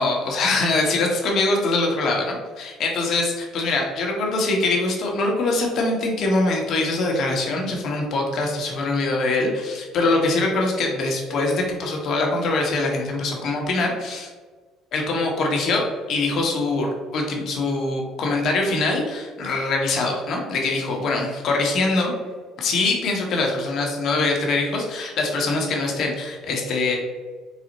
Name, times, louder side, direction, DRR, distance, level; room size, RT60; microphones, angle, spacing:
voice 1, 0.0-14.3 14.9-15.8 16.1-22.1 22.6-27.0, left 2 dB, 55° left, 0 dB, 1.0 m, -23 dB
4.1 x 2.1 x 4.0 m, 1.4 s
cardioid pair, 105°, 0 cm